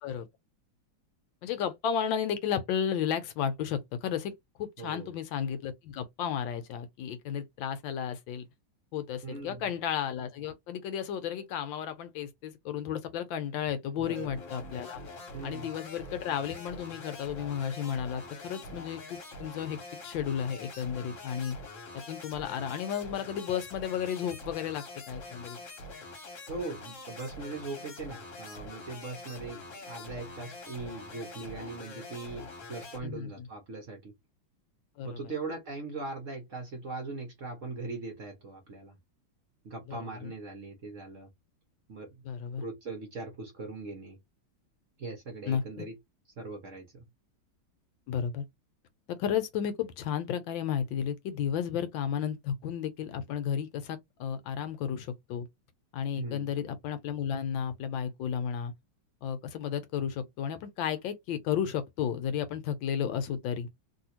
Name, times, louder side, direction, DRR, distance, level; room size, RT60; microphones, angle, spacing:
voice 1, 1.4-8.5 8.9-15.0 15.4-21.6 21.9-25.6 33.0-33.5 35.0-35.2 39.9-40.3 42.2-42.6 45.5-45.9 48.1-48.4 49.1-55.5 55.9-58.7 59.2-63.7, left 8 dB, 75° left, 1.3 m, -33 dB
voice 2, 4.8-5.1 9.2-9.7 14.0-14.4 15.3-15.7 26.5-34.1 35.0-39.0 39.6-41.3 41.9-42.2 42.6-44.2 45.0-45.9 46.4-47.1 56.1-56.5, right 3 dB, 55° right, 0.9 m, -40 dB
sound 1, 14.0-33.0, left 2 dB, 45° left, 1.2 m, -45 dB
3.0 x 2.7 x 2.8 m
omnidirectional pair, 2.2 m